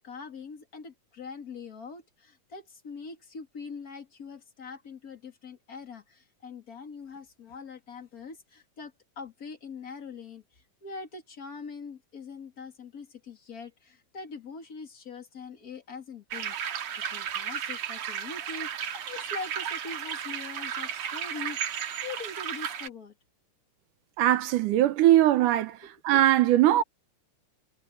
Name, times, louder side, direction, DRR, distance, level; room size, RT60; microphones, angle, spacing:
voice 1, 0.0-16.8 17.1-23.1, left 4 dB, 30° left, 2.3 m, -43 dB
sound 1, 16.3-22.9, right 8 dB, 60° right, 2.5 m, -34 dB
voice 2, 24.2-25.8 26.0-26.8, right 13 dB, 80° right, 2.5 m, -21 dB
omnidirectional pair, 3.7 m